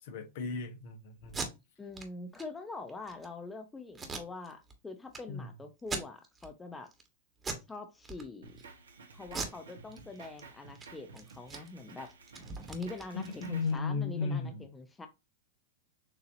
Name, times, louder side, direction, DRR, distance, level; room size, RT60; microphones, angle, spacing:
voice 1, 0.0-1.4 5.3-5.5 13.4-14.6, left 4 dB, 60° left, 1.2 m, -35 dB
Packing tape duct tape, 1.2-1.5 1.9-2.1 2.3-2.4 2.9-3.3 3.9-4.7 5.1-5.2 5.8-6.5 6.9-7.1 7.4-7.7 8.0-8.6 9.3-10.4 10.7-10.9 11.1-13.8, right 4 dB, 20° right, 1.4 m, -40 dB
voice 2, 1.8-6.9 7.7-8.6 9.1-12.1 12.7-15.1, left 3 dB, 15° left, 0.8 m, -44 dB
Drum kit, 8.4-13.7, right 4 dB, 85° right, 1.1 m, -53 dB
6.9 x 2.8 x 2.7 m
hypercardioid pair, 110°, 0 cm